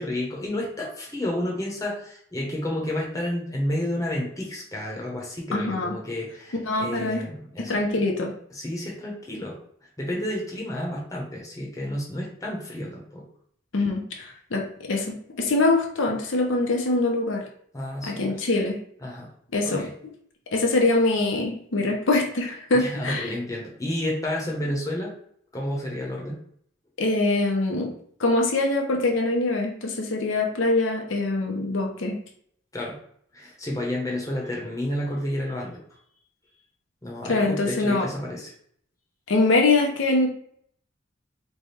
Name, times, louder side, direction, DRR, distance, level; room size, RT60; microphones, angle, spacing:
voice 1, 0.0-7.7 8.5-9.6 10.0-13.2 17.7-18.3 19.0-19.3 19.6-19.9 22.7-25.1 25.5-26.4 32.7-33.0 33.3-35.8 37.0-38.5, left 1 dB, 15° left, -3 dB, 0.8 m, -30 dB
voice 2, 5.5-5.9 6.7-7.2 7.7-8.3 13.7-17.4 18.1-18.8 19.5-19.8 20.5-23.3 27.0-27.9 28.2-32.2 37.3-38.1 39.3-40.3, left 2 dB, 75° left, 1 dB, 0.7 m, -23 dB
3.4 x 2.2 x 4.2 m, 0.63 s
head